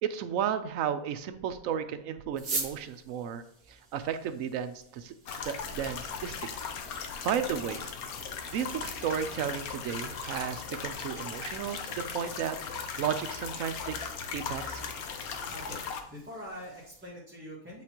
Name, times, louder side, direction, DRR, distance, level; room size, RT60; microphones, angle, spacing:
voice 1, 0.0-5.1 5.4-6.4 7.2-7.9 8.5-14.0 14.3-14.9, right 8 dB, 70° right, 9 dB, 0.9 m, -33 dB
sound 1, 2.3-17.1, right 3 dB, 45° right, 1.5 m, -46 dB
sound 2, 5.3-16.0, left 6 dB, 80° left, 1.2 m, -38 dB
voice 2, 15.0-15.8 16.1-17.8, equal, 10° right, -8 dB, 1.3 m, -45 dB
8.1 x 4.1 x 2.9 m, 0.71 s
omnidirectional pair, 1.5 m